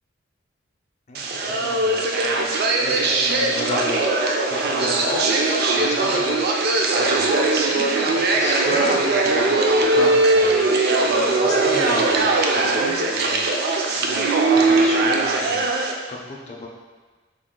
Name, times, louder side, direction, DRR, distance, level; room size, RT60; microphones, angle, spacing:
voice 1, 1.1-6.7 7.0-10.7 11.0-13.5 13.9-14.2 14.5-15.6 16.1-16.7, left 2 dB, 35° left, -1 dB, 0.5 m, -33 dB
sound 1, 1.1-15.9, right 2 dB, 55° right, 0.4 m, -20 dB
3.5 x 2.3 x 3.7 m, 1.3 s
head